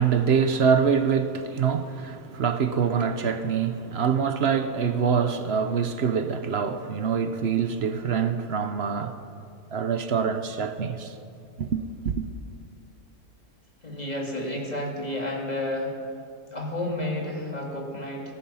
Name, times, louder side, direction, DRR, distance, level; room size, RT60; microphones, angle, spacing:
voice 1, 0.0-9.2 9.7-11.1 11.6-12.2, right 6 dB, 55° right, 0.8 m, -25 dB
voice 2, 13.8-15.9 16.5-18.3, left 1 dB, 25° left, 2.3 m, -31 dB
18.0 x 13.5 x 5.6 m
omnidirectional pair, 1.6 m